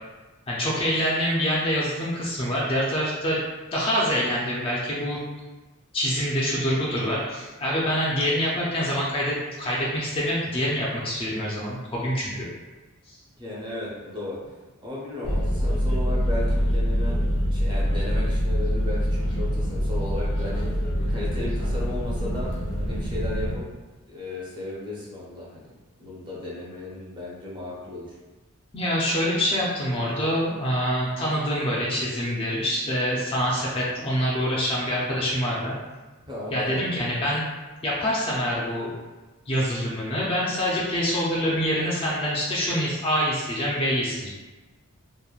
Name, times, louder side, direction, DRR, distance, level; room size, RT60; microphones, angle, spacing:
voice 1, 0.5-3.4 3.7-5.2 5.9-12.5 28.7-35.7 36.5-37.4 37.8-38.9 39.5-44.3, equal, 25° left, -6 dB, 0.4 m, -25 dB
voice 2, 13.4-14.4 14.8-17.3 17.5-20.6 21.1-22.5 22.8-23.6 24.1-25.7 26.0-28.1 36.2-37.0, left 2 dB, 20° right, -6 dB, 0.6 m, -35 dB
sound 1, 15.2-23.6, equal, 65° left, 0.6 m, -25 dB
2.9 x 2.1 x 2.3 m, 1.2 s
head